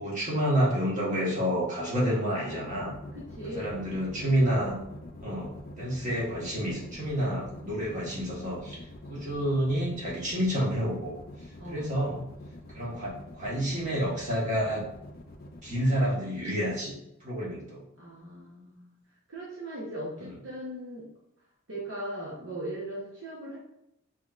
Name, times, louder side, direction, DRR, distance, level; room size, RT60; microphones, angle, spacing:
voice 1, 0.0-2.9 3.5-4.8 5.2-8.8 9.1-11.2 11.7-12.2 12.7-14.8 15.6-16.9 17.2-17.8, equal, 35° right, -6 dB, 1.4 m, -29 dB
sound 1, 2.6-16.1, left 1 dB, 45° left, 0.5 m, -45 dB
voice 2, 3.1-3.8 11.6-11.9 18.0-21.1 21.7-23.6, right 1 dB, 65° right, -7 dB, 1.1 m, -39 dB
5.4 x 3.0 x 2.5 m, 0.82 s
head